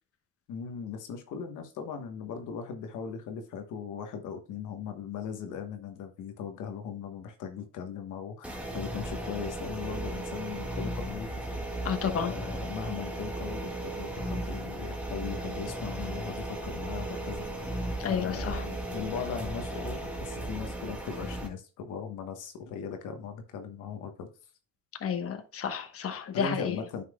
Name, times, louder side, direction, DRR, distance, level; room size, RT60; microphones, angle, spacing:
voice 1, 0.5-11.3 12.0-17.8 18.1-24.3 26.3-27.0, left 6 dB, 90° left, 1.2 m, -39 dB
sound 1, 8.4-21.5, right 1 dB, 5° right, 1.6 m, -36 dB
voice 2, 11.8-12.3 18.0-18.6 25.0-26.8, left 7 dB, 50° left, 1.0 m, -31 dB
9.8 x 5.7 x 2.2 m
cardioid pair, 90°, 30 cm